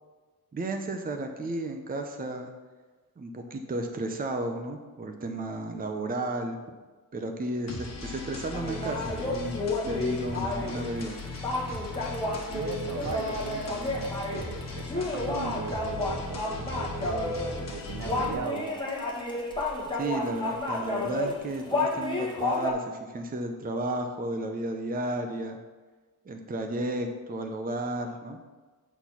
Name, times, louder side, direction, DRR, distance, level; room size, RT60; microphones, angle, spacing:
voice 1, 0.5-2.5 3.2-6.6 7.1-9.6 9.8-11.2 19.9-25.6 26.3-28.4, right 1 dB, 25° right, 5 dB, 0.6 m, -33 dB
sound 1, 7.7-18.3, left 3 dB, 45° left, 1.3 m, -38 dB
sound 2, 8.5-22.7, left 2 dB, 10° left, 1.3 m, -31 dB
voice 2, 12.5-17.4 17.7-18.7, right 5 dB, 65° right, 5 dB, 0.9 m, -37 dB
8.1 x 4.4 x 5.7 m, 1.3 s
wide cardioid pair, 155°, 38 cm